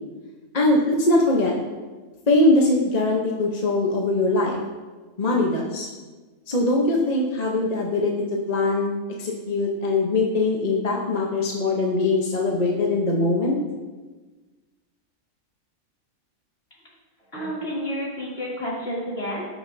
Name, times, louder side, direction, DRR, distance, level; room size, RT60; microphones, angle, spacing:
voice 1, 0.5-1.6 2.3-4.6 5.2-5.9 6.5-8.1 8.5-13.6, left 2 dB, 35° left, -1 dB, 0.8 m, -21 dB
voice 2, 17.3-19.4, equal, 50° left, -7 dB, 3.0 m, -30 dB
14.5 x 6.0 x 2.7 m, 1.3 s
omnidirectional pair, 1.4 m